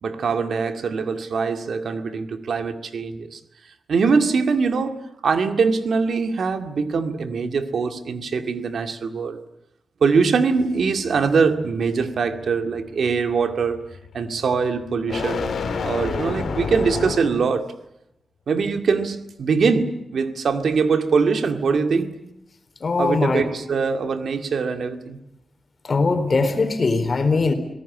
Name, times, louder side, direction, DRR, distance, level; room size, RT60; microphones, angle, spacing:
voice 1, 0.0-3.4 3.9-9.4 10.0-13.8 14.1-17.7 18.5-22.1 23.0-25.2, right 5 dB, 85° right, 2.2 m, -22 dB
sound 1, 10.6-17.5, left 5 dB, 90° left, 3.0 m, -31 dB
voice 2, 22.8-23.4 25.9-27.5, left 3 dB, 50° left, 4.1 m, -20 dB
26.5 x 18.0 x 9.8 m
wide cardioid pair, 95°, 0 cm